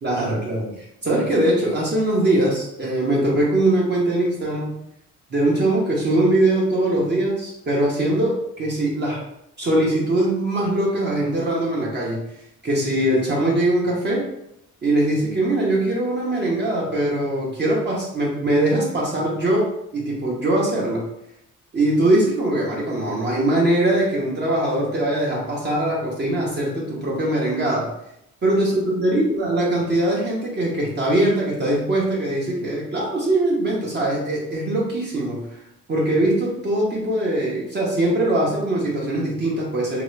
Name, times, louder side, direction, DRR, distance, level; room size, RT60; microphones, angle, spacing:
voice 1, 0.0-4.8 5.3-9.2 9.6-12.3 12.6-14.3 14.8-21.1 21.7-27.9 28.4-35.6 35.9-40.0, right 1 dB, 35° right, -4 dB, 0.8 m, -21 dB
2.8 x 2.3 x 3.1 m, 0.80 s
cardioid pair, 90°, 30 cm